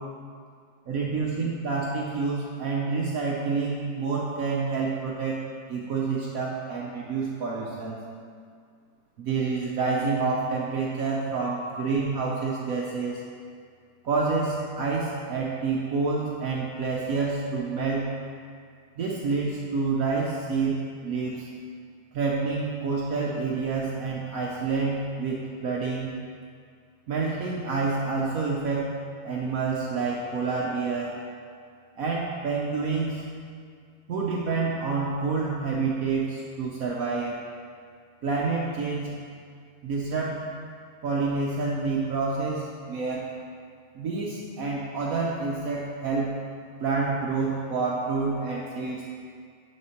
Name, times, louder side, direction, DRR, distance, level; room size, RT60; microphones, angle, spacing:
voice 1, 0.9-5.4 5.7-8.0 9.2-13.2 14.0-18.1 19.0-21.5 22.1-26.1 27.1-28.9 29.2-31.2 32.0-33.2 34.1-37.4 38.2-39.2 39.8-40.4 41.0-43.3 43.9-46.3 46.8-49.1, right 4 dB, 60° right, -3 dB, 0.9 m, -28 dB
9.6 x 3.7 x 4.4 m, 2.1 s
omnidirectional pair, 2.0 m